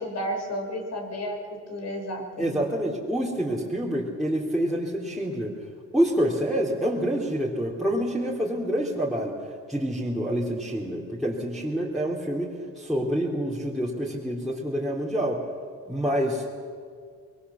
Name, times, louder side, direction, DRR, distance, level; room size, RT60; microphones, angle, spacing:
voice 1, 0.0-1.4 1.7-2.6, equal, 60° left, 3 dB, 5.4 m, -32 dB
voice 2, 2.4-5.6 5.9-9.4 9.7-15.4 15.9-16.6, equal, ahead, -6 dB, 3.5 m, -27 dB
25.0 x 22.0 x 7.2 m, 2.1 s
cardioid pair, 90°, 30 cm